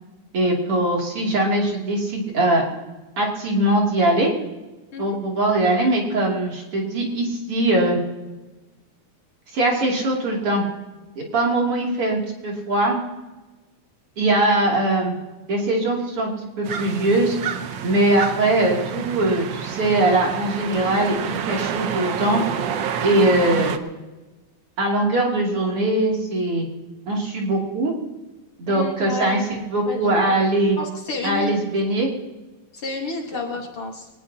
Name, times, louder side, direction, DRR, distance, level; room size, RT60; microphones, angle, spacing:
voice 1, 0.3-2.6 3.2-4.3 5.0-8.0 9.5-10.6 11.2-13.0 14.2-15.2 15.5-16.3 16.6-17.4 17.8-22.4 23.0-23.7 24.8-26.7 27.1-27.9 28.6-30.8 31.2-32.1, right 1 dB, 50° right, -1 dB, 3.6 m, -21 dB
sound 1, 16.6-23.8, right 8 dB, 80° right, 1.0 m, -28 dB
voice 2, 28.7-29.4 29.9-30.3 30.8-31.6 32.7-34.1, left 3 dB, 50° left, 1 dB, 2.4 m, -30 dB
23.5 x 18.5 x 2.9 m, 1.2 s
omnidirectional pair, 3.4 m